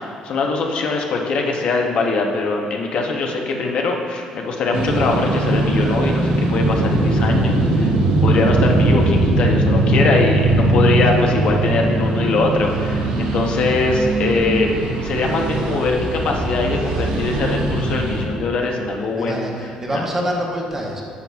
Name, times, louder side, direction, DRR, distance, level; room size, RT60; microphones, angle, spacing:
voice 1, 0.0-7.9 8.2-20.0, left 3 dB, 55° left, 2 dB, 0.7 m, -22 dB
sound 1, 4.7-18.2, right 2 dB, 85° right, 1.0 m, -19 dB
voice 2, 19.2-21.0, equal, 20° right, -1 dB, 0.9 m, -25 dB
9.5 x 5.9 x 2.3 m, 2.3 s
cardioid pair, 120°, 2 cm